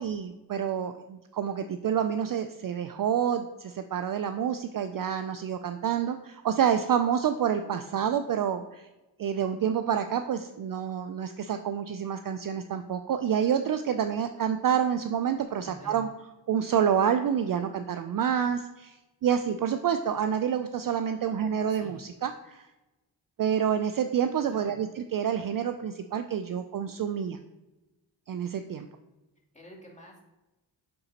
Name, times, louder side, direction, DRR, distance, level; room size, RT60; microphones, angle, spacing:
voice 1, 0.0-8.8 9.2-16.1 16.5-19.0 19.2-22.7 23.4-27.4 28.3-28.9, right 8 dB, 45° right, 8 dB, 0.4 m, -28 dB
voice 2, 15.6-16.0 21.7-22.0 24.5-24.7 29.5-30.2, equal, 15° left, -1 dB, 2.1 m, -48 dB
9.0 x 3.9 x 2.9 m, 1.0 s
supercardioid pair, 45°, 49 cm